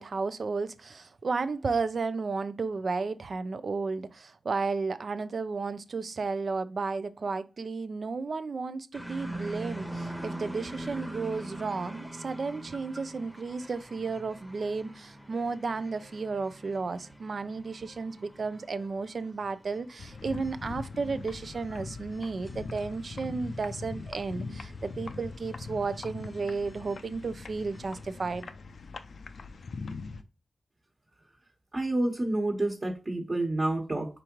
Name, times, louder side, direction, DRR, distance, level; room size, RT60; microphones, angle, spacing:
voice 1, 0.0-28.5, right 4 dB, 65° right, 0.4 m, -33 dB
sound 1, 8.9-28.4, right 1 dB, ahead, 0.9 m, -44 dB
sound 2, 20.0-30.2, left 4 dB, 75° left, 0.4 m, -41 dB
voice 2, 31.7-34.1, right 2 dB, 40° right, 1.2 m, -28 dB
4.9 x 3.6 x 3.0 m
cardioid pair, 60°, 0 cm